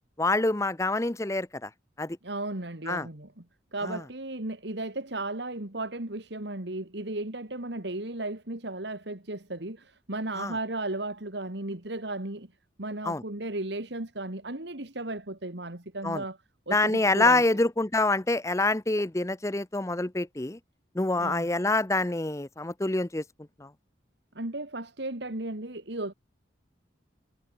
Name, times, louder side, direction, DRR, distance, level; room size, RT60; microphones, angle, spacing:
voice 1, 0.2-1.7 2.0-2.2 2.9-3.1 3.9-4.0 10.4-10.5 13.1-13.2 16.0-16.2 16.7-20.6 20.9-23.2 23.6-23.7, left 2 dB, 15° left, 0.7 m, -26 dB
voice 2, 2.2-3.4 3.7-12.5 12.8-16.4 16.7-17.4 21.2-21.5 24.3-26.1, right 2 dB, 65° right, 2.4 m, -35 dB
head